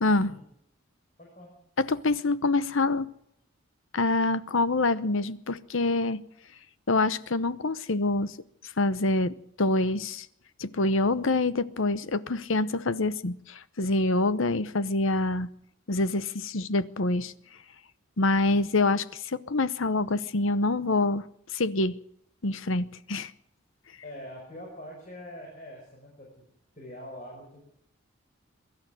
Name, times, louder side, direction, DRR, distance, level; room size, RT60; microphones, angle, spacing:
voice 1, 0.0-0.3 1.8-3.1 3.9-6.2 6.9-8.3 8.8-10.3 10.6-15.5 15.9-17.3 18.2-21.2 21.5-21.9 22.4-23.3, left 2 dB, 65° left, 0.9 m, -26 dB
voice 2, 1.2-1.5 24.0-26.3 26.8-27.6, left 1 dB, 35° left, 5.3 m, -44 dB
23.0 x 12.5 x 9.1 m
head